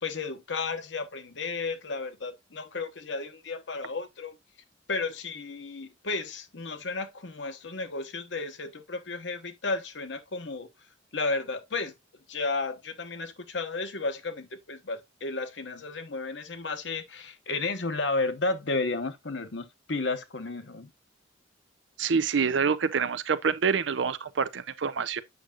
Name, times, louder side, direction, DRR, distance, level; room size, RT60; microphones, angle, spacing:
voice 1, 0.0-4.4 4.9-10.7 11.1-11.9 12.3-20.9, left 3 dB, 70° left, 1.1 m, -33 dB
voice 2, 22.0-25.2, right 6 dB, 80° right, 0.6 m, -26 dB
8.0 x 6.2 x 2.5 m
head